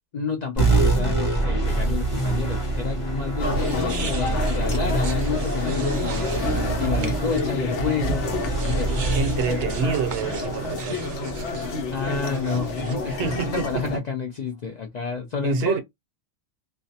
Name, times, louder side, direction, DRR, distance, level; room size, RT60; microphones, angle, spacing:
voice 1, 0.1-6.3 6.8-8.3 8.7-9.1 9.5-9.6 11.9-15.8, left 5 dB, 60° left, 0.4 m, -30 dB
sound 1, 0.6-11.4, right 2 dB, 30° left, 0.8 m, -26 dB
sound 2, 2.3-2.6 3.6-7.4 7.7-7.9 8.4-13.5, right 5 dB, 55° right, 0.5 m, -39 dB
sound 3, 3.4-14.0, left 2 dB, 80° left, 1.0 m, -28 dB
voice 2, 9.1-11.1 13.1-14.0 15.4-15.8, right 5 dB, 75° right, 0.9 m, -27 dB
2.4 x 2.0 x 2.6 m
omnidirectional pair, 1.2 m